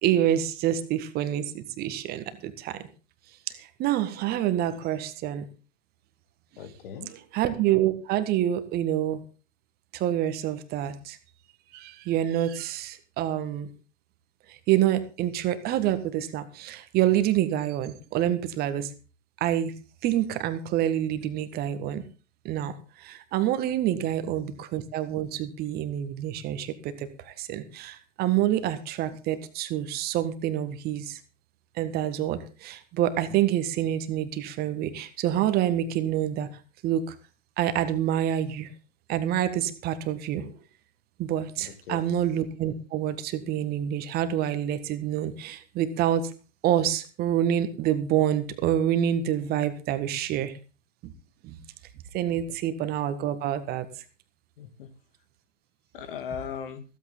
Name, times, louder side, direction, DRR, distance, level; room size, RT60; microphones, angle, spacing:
voice 1, 0.0-2.8 3.5-5.5 7.3-9.2 9.9-11.2 11.7-13.7 14.5-18.9 19.4-19.7 20.0-22.0 22.4-31.2 31.7-36.5 36.8-37.1 37.6-38.7 39.1-40.5 41.2-46.3 46.6-50.5 51.0-51.1 51.4-51.6 52.1-53.9, right 11 dB, 25° right, 11 dB, 1.7 m, -27 dB
voice 2, 6.6-7.1 23.9-24.0 41.6-42.0 54.6-54.9 55.9-56.8, left 8 dB, 50° left, 11 dB, 2.4 m, -38 dB
15.5 x 14.5 x 3.8 m, 0.35 s
figure-of-eight pair, 105°, 36 cm